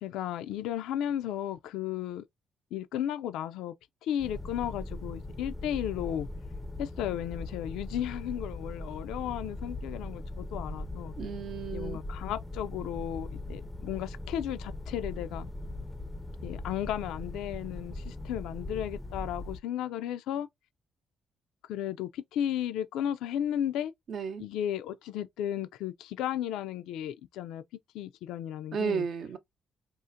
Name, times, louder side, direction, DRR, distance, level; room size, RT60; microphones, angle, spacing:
voice 1, 0.0-2.2 2.7-3.8 4.0-6.3 6.8-11.1 11.7-15.5 16.4-20.5 21.7-23.9 24.4-27.6 27.9-29.1, left 10 dB, 90° left, 0.3 m, -34 dB
sound 1, 4.2-19.6, left 2 dB, 10° left, 0.4 m, -40 dB
voice 2, 11.2-12.0 24.1-24.4 28.7-29.4, right 6 dB, 60° right, 0.6 m, -33 dB
3.7 x 2.4 x 2.6 m
cardioid pair, 90°, 0 cm